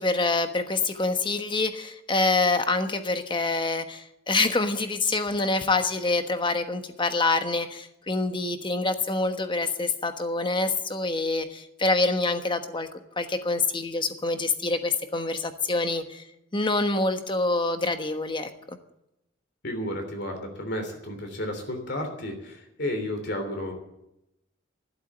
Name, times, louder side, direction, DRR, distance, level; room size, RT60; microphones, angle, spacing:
voice 1, 0.0-12.9 13.2-16.2 16.5-18.8, left 3 dB, 25° left, 8 dB, 1.2 m, -26 dB
voice 2, 19.6-23.7, left 1 dB, 60° left, 5 dB, 3.1 m, -32 dB
12.5 x 12.0 x 8.0 m, 0.85 s
head